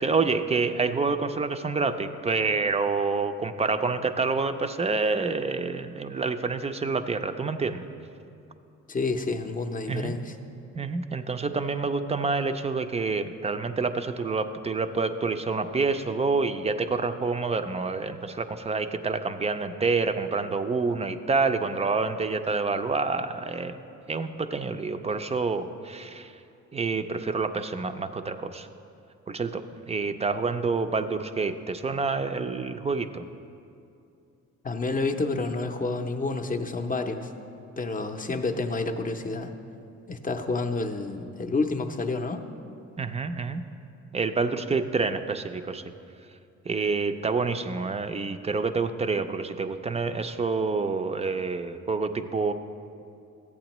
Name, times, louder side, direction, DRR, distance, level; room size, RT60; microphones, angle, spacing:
voice 1, 0.0-7.8 9.9-10.2 10.7-23.8 24.1-26.3 26.7-28.7 29.3-33.2 43.0-43.6 44.1-45.8 46.7-52.5, right 4 dB, 20° right, 9 dB, 0.4 m, -28 dB
voice 2, 8.9-10.3 34.6-37.3 37.8-39.5 40.1-42.5, left 3 dB, 30° left, 5 dB, 0.6 m, -29 dB
14.0 x 8.5 x 3.0 m, 2.5 s
cardioid pair, 90°, 30 cm